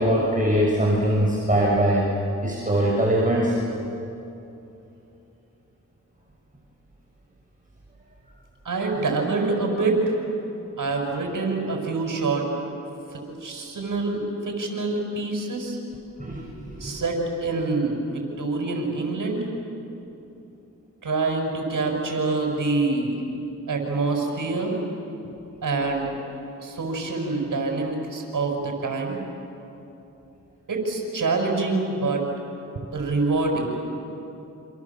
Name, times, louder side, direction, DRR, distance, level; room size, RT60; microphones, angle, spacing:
voice 1, 0.0-2.1 2.4-3.6 16.2-17.0, right 1 dB, 25° right, -3 dB, 6.1 m, -22 dB
voice 2, 8.6-10.2 10.8-12.5 13.1-15.8 16.8-19.5 21.0-23.2 23.7-24.8 25.6-26.1 26.6-29.2 30.7-32.2 32.9-33.8, right 3 dB, 75° right, 1 dB, 6.6 m, -26 dB
28.0 x 28.0 x 7.5 m, 2.9 s
cardioid pair, 55°, 32 cm